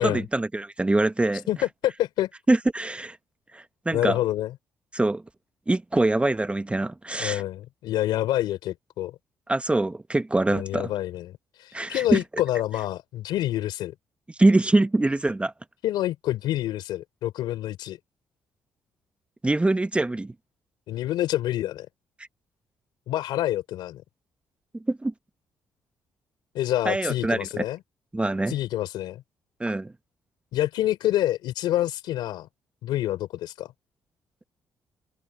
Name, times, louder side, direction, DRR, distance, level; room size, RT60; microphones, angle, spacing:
voice 1, 0.0-1.4 2.5-3.2 3.5-4.2 4.9-5.2 5.7-7.4 9.5-10.9 11.7-12.2 14.4-15.5 19.4-20.3 24.7-25.1 26.8-27.6 28.1-28.5 29.6-29.9, right 2 dB, 15° right, 0.9 m, -24 dB
voice 2, 1.8-2.3 3.9-4.5 7.2-9.1 10.5-13.9 15.8-18.0 20.9-21.9 23.1-24.0 26.5-27.8 28.5-29.2 30.5-32.5 32.8-33.7, left 14 dB, 85° left, 3.2 m, -27 dB
open air
cardioid pair, 75°, 8 cm